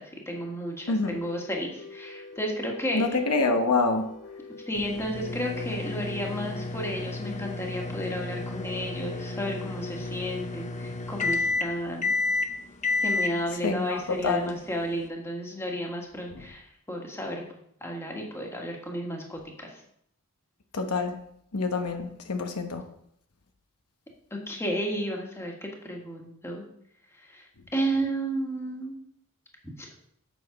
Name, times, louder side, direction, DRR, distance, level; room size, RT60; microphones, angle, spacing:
voice 1, 0.0-3.0 4.7-12.1 13.0-16.6 16.9-19.8 24.3-26.6 27.1-27.5 27.7-29.0 29.6-29.9, equal, 10° left, 1.6 m, -32 dB
sound 1, 0.7-11.0, left 2 dB, 65° left, 1.6 m, -48 dB
voice 2, 0.9-1.2 2.9-4.1 13.6-14.6 16.3-16.4 20.7-21.2 21.5-22.9, left 3 dB, 85° left, 0.9 m, -27 dB
sound 2, 4.7-15.1, left 3 dB, 35° left, 0.7 m, -31 dB
8.3 x 6.1 x 5.1 m
head